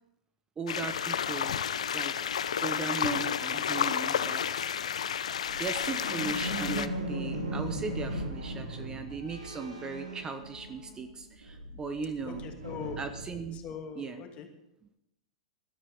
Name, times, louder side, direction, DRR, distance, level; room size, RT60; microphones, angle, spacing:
voice 1, 0.6-1.6 1.9-2.2 2.6-4.7 5.5-12.4 13.0-13.6 14.0-14.2, right 4 dB, 20° right, 8 dB, 1.1 m, -37 dB
sound 1, 0.7-6.9, left 8 dB, 75° left, 0.7 m, -31 dB
sound 2, 5.4-11.0 11.3-13.6, right 1 dB, 85° right, 5.1 m, -38 dB
voice 2, 12.3-13.0 13.5-14.5, left 6 dB, 35° left, 3 dB, 2.7 m, -41 dB
20.5 x 13.0 x 3.7 m, 0.85 s
hypercardioid pair, 105°, 4 cm